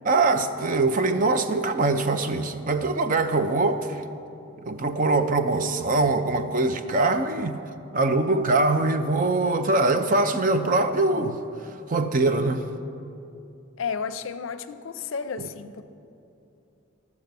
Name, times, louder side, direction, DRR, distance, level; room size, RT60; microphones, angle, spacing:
voice 1, 0.1-4.0 4.6-7.6 7.9-11.4 11.9-12.6 15.4-15.5, right 2 dB, 40° right, 0.5 m, -23 dB
voice 2, 13.8-15.8, left 6 dB, 65° left, 0.5 m, -32 dB
13.0 x 7.0 x 6.7 m
head